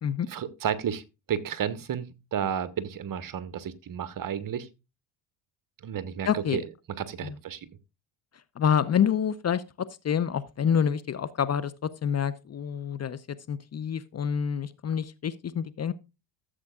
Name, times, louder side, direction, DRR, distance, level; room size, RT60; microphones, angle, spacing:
voice 1, 0.3-1.0 1.3-4.7 5.8-6.6 7.0-7.6, right 8 dB, 45° right, 1.3 m, -32 dB
voice 2, 6.2-6.6 7.2-7.3 8.6-13.2 13.5-15.9, left 8 dB, 35° left, 0.7 m, -27 dB
15.0 x 7.7 x 2.4 m
supercardioid pair, 85°, 48 cm